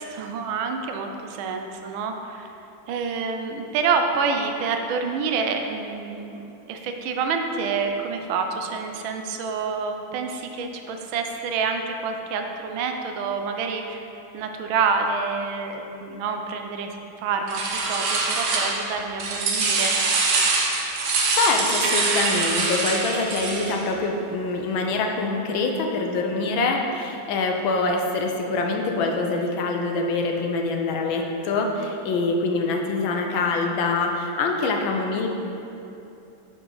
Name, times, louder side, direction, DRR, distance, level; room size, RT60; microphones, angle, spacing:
voice 1, 0.0-2.5 2.9-14.1 14.3-19.9, right 5 dB, 80° right, 4 dB, 1.4 m, -28 dB
sound 1, 17.5-18.9 19.2-23.8, right 3 dB, 60° right, 1.3 m, -24 dB
voice 2, 21.3-35.3, left 3 dB, 75° left, 2 dB, 1.5 m, -25 dB
9.1 x 5.1 x 3.8 m, 2.9 s
omnidirectional pair, 2.2 m